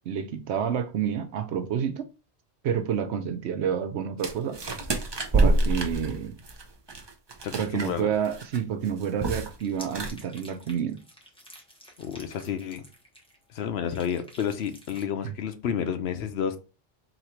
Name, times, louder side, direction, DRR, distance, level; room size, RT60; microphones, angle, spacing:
voice 1, 0.1-2.0 2.6-4.6 5.3-6.4 7.5-11.0 15.2-15.3, right 8 dB, 70° right, 0.9 m, -29 dB
sound 1, 4.2-8.0 8.2-8.6 8.9-9.6 9.8-10.1, right 2 dB, 35° right, 0.4 m, -26 dB
voice 2, 7.4-8.1 12.0-12.8 13.5-16.6, left 8 dB, 65° left, 0.8 m, -30 dB
sound 2, 9.5-13.6 13.9-15.0, equal, 5° left, 0.8 m, -50 dB
4.1 x 2.6 x 4.3 m
omnidirectional pair, 1.2 m